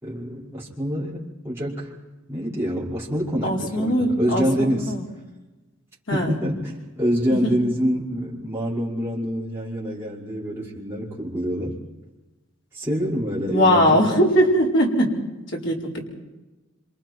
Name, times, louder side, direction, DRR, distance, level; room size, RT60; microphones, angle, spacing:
voice 1, 0.0-1.9 2.3-4.9 6.1-11.8 12.7-14.2, equal, 10° right, -7 dB, 5.4 m, -26 dB
voice 2, 3.4-5.1 6.1-6.4 7.4-7.6 13.5-15.2 15.5-16.1, equal, 60° left, -3 dB, 4.7 m, -20 dB
27.5 x 27.0 x 4.7 m, 1.1 s
head